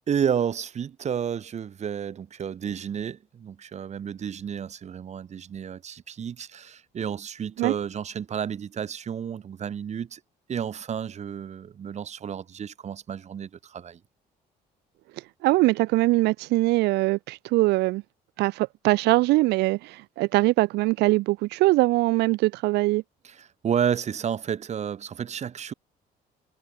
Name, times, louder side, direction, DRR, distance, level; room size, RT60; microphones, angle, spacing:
voice 1, 0.0-10.2 10.5-14.0 23.2-25.7, right 8 dB, 40° right, 1.9 m, -31 dB
voice 2, 15.4-18.0 18.4-23.0, right 20 dB, 80° right, 0.5 m, -22 dB
cardioid pair, 110°, 17 cm